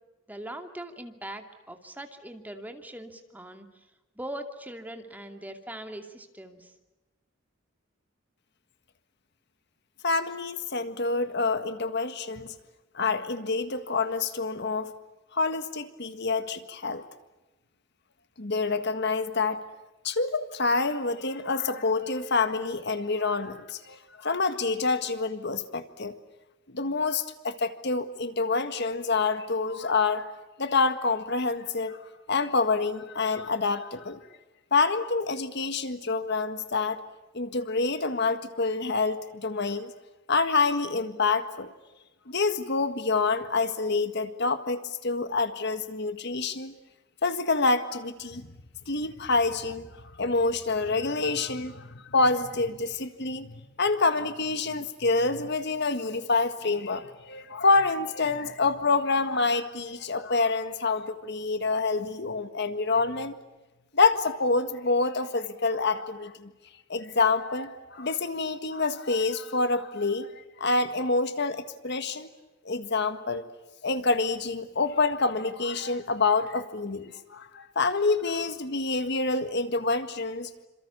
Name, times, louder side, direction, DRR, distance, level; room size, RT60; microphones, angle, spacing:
voice 1, 0.3-3.7 4.2-6.7, right 1 dB, 10° right, 5 dB, 2.5 m, -41 dB
voice 2, 10.0-12.5 12.9-14.9 15.3-17.0 18.4-19.6 20.0-26.1 26.7-30.3 30.6-32.0 32.3-34.2 34.7-37.0 37.3-39.9 40.3-41.7 42.3-46.7 47.2-48.5 48.9-49.9 50.2-63.3 63.9-66.5 66.9-72.3 72.6-73.4 73.8-80.5, left 3 dB, 55° left, 10 dB, 1.7 m, -27 dB
28.0 x 27.0 x 7.1 m, 1.1 s
head